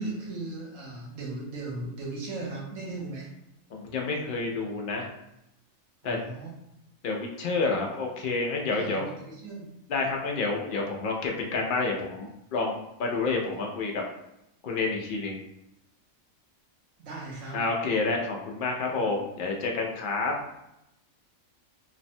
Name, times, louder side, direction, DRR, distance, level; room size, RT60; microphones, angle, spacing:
voice 1, 0.0-3.3 6.0-6.5 8.7-9.7 17.0-17.6, right 2 dB, 70° right, -4 dB, 1.3 m, -37 dB
voice 2, 3.7-5.1 6.0-6.3 7.0-9.1 9.9-14.0 14.6-15.4 17.5-20.3, left 3 dB, 80° left, 0 dB, 0.4 m, -29 dB
3.2 x 2.1 x 2.6 m, 0.85 s
omnidirectional pair, 1.4 m